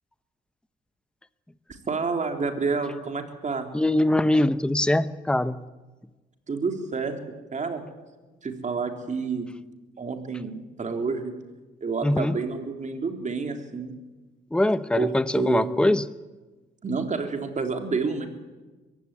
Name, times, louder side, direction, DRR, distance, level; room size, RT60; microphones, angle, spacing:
voice 1, 1.9-3.7 6.5-7.2 7.5-7.8 8.4-9.5 10.0-11.3 11.8-13.9 15.0-15.8 16.8-18.3, right 4 dB, 40° right, 5 dB, 3.6 m, -29 dB
voice 2, 3.7-5.6 12.0-12.4 14.5-16.0, left 1 dB, 5° left, 13 dB, 0.9 m, -22 dB
22.5 x 16.0 x 9.8 m, 1.2 s
cardioid pair, 90°, 20 cm